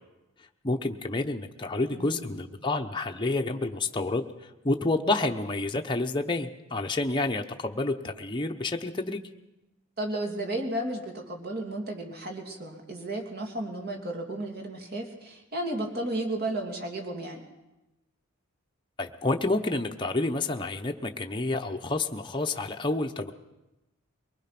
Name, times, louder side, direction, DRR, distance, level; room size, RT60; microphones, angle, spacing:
voice 1, 0.6-9.2 19.0-23.3, left 2 dB, 20° left, 3 dB, 0.9 m, -29 dB
voice 2, 1.9-2.4 10.0-17.4, right 1 dB, 45° right, 3 dB, 2.9 m, -33 dB
23.5 x 20.0 x 6.0 m, 0.97 s
head